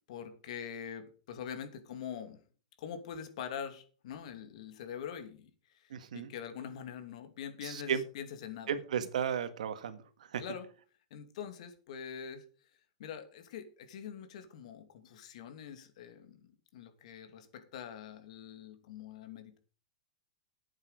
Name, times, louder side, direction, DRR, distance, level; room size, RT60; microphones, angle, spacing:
voice 1, 0.1-2.4 2.8-8.7 10.4-10.7 11.1-12.4 13.0-19.6, left 8 dB, 65° left, 8 dB, 2.7 m, -44 dB
voice 2, 5.9-6.3 7.6-8.0 8.7-10.0 10.3-10.4, right 8 dB, 90° right, 10 dB, 1.7 m, -34 dB
11.5 x 8.8 x 5.1 m, 0.39 s
supercardioid pair, 145°, 4 cm